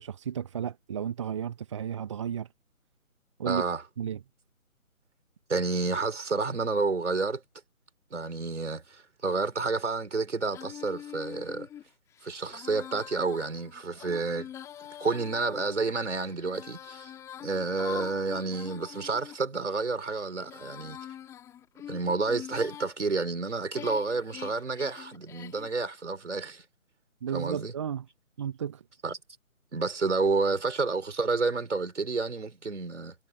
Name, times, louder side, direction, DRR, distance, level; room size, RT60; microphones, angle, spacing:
voice 1, 0.0-2.5 3.4-3.6 4.0-4.2 27.2-28.1 28.4-28.8, right 8 dB, 20° right, 1.6 m, -33 dB
voice 2, 3.4-3.8 5.5-7.4 8.1-11.7 12.2-14.5 15.0-17.1 17.4-21.0 21.9-26.6 27.3-27.7 29.0-29.2 29.7-33.1, right 3 dB, 55° right, 5.0 m, -30 dB
Female singing, 10.5-19.4 20.0-22.9 23.5-25.8, left 10 dB, 5° left, 4.6 m, -44 dB
figure-of-eight pair, 150°, 42 cm